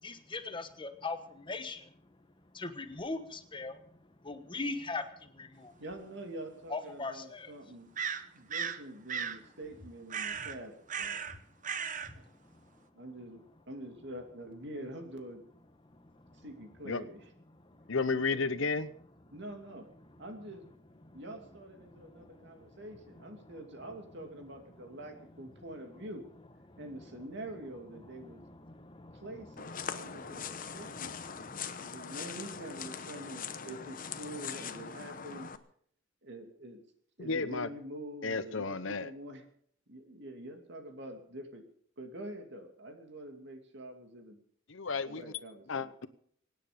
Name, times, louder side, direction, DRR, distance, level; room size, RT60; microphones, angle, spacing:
voice 1, 0.0-1.9 2.5-5.7 6.7-7.5 10.4-10.5 11.2-11.4 12.0-12.9 15.9-16.4 17.5-18.0 21.0-21.2 21.8-22.9 23.3-23.6 24.8-24.9 26.7-27.2 27.9-31.6, left 3 dB, 25° left, 9 dB, 1.2 m, -43 dB
voice 2, 5.8-7.9 8.3-11.2 12.1-12.2 12.9-15.4 16.4-17.3 18.1-18.4 19.3-19.9 20.2-20.6 21.1-26.3 26.8-28.4 29.1-31.2 31.8-35.5 36.2-36.8 37.2-39.4 39.9-41.6 42.0-44.4 45.1-45.9, right 1 dB, 60° right, 5 dB, 2.6 m, -46 dB
sound 1, 5.9-6.0 8.0-8.8 9.1-9.4 10.1-10.6 10.9-11.4 11.6-12.1, right 7 dB, 40° right, 0.9 m, -36 dB
voice 3, 17.9-18.9 37.2-37.7 38.2-39.1 44.7-45.2 45.7-46.1, left 4 dB, 75° left, 13 dB, 0.9 m, -32 dB
sound 2, 29.6-35.6, left 6 dB, 45° left, 0.9 m, -41 dB
24.0 x 9.8 x 5.2 m, 0.62 s
head